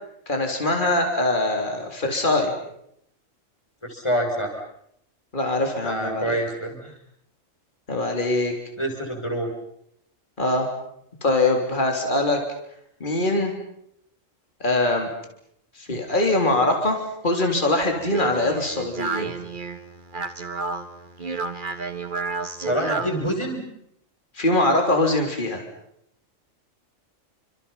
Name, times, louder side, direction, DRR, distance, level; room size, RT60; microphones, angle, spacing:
voice 1, 0.3-2.5 5.3-6.4 7.9-8.5 10.4-10.7 11.2-12.4 13.0-13.5 14.6-15.1 15.8-19.3 24.3-25.6, left 2 dB, 40° left, 3 dB, 3.8 m, -22 dB
voice 2, 3.8-4.6 5.8-7.0 8.8-9.5 22.6-23.6, equal, 20° left, 2 dB, 5.8 m, -26 dB
Speech, 17.8-23.3, right 4 dB, 40° right, 1.7 m, -31 dB
29.5 x 26.5 x 5.7 m, 0.73 s
omnidirectional pair, 1.3 m